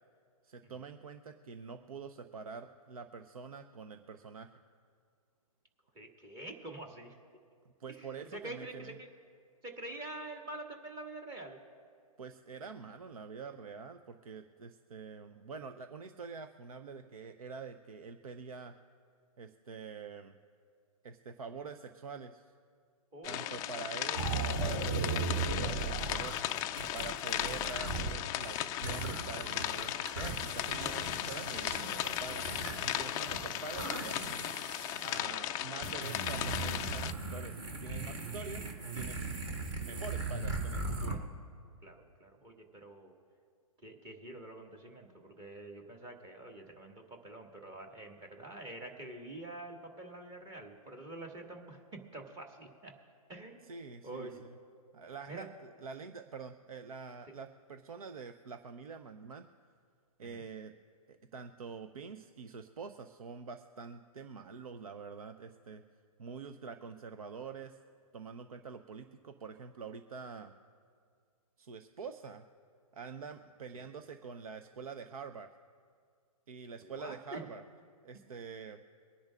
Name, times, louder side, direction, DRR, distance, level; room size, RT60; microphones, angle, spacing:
voice 1, 0.4-4.5 7.8-9.0 12.2-18.7 19.4-20.4 21.0-22.4 23.3-26.4 26.9-34.5 35.0-39.3 39.8-41.2 53.7-54.6 54.9-55.5 55.8-59.5 60.2-60.7 61.1-65.8 66.2-67.8 68.1-70.5 71.6-72.5 72.9-75.5 76.5-77.6 78.0-78.8, right 5 dB, 70° right, 8 dB, 0.8 m, -46 dB
voice 2, 5.9-7.2 7.9-9.1 9.6-11.6 23.1-24.0 40.3-40.4 41.1-41.3 41.8-43.1 43.8-53.0 53.3-53.7 54.0-54.4 55.3-55.5 57.3-57.4 60.2-60.4 73.7-73.9 76.8-77.4, right 2 dB, 20° right, 2 dB, 1.9 m, -46 dB
sound 1, 23.2-37.1, left 12 dB, 20° left, 0.3 m, -37 dB
sound 2, 24.1-28.1 28.4-35.2 35.8-41.1, right 3 dB, 50° right, 3.1 m, -38 dB
24.0 x 10.0 x 2.5 m, 2.2 s
hypercardioid pair, 130°, 19 cm